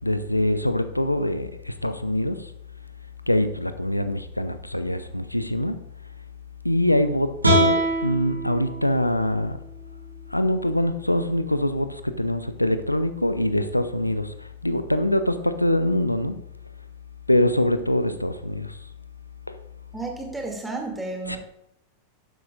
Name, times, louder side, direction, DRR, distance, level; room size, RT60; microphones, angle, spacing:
voice 1, 0.0-2.5 3.3-5.8 6.6-9.6 10.3-16.4 17.3-18.8 19.5-19.6 21.3-21.4, left 1 dB, 85° left, 0.6 m, -24 dB
sound 1, 7.4-10.6, equal, 80° right, 2.4 m, -25 dB
voice 2, 19.9-21.4, right 3 dB, 10° right, 2.4 m, -32 dB
12.0 x 10.0 x 2.5 m
figure-of-eight pair, 90°, 0 cm